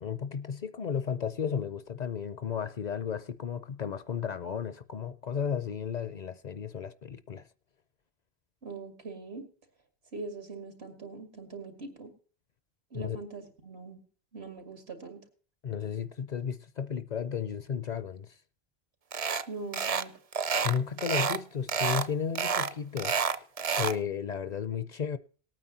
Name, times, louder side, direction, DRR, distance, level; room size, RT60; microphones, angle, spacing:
voice 1, 0.0-7.5 12.9-13.2 15.6-18.4 20.6-23.1 23.8-25.2, left 7 dB, 50° left, 0.6 m, -33 dB
voice 2, 8.6-9.5 10.1-12.1 12.9-14.0 14.3-15.2 19.5-20.1, right 4 dB, 90° right, 2.6 m, -42 dB
sound 1, 19.1-19.5 19.7-20.1 20.3-21.4 21.7-22.1 22.4-24.0, right 6 dB, 45° right, 0.6 m, -29 dB
19.0 x 9.1 x 2.8 m
omnidirectional pair, 1.0 m